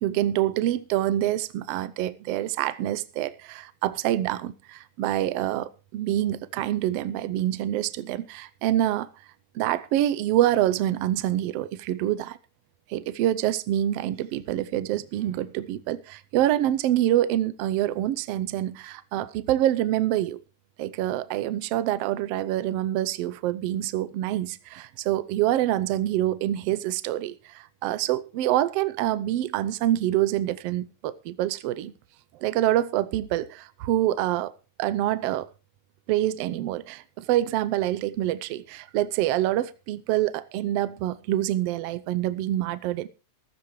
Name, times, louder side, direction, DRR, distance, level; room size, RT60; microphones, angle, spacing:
voice 1, 0.0-9.1 9.5-12.4 12.9-20.4 20.8-31.9 32.4-34.5 34.8-35.5 36.1-43.1, right 13 dB, 70° right, 1.6 m, -26 dB
14.5 x 14.5 x 3.2 m
omnidirectional pair, 3.4 m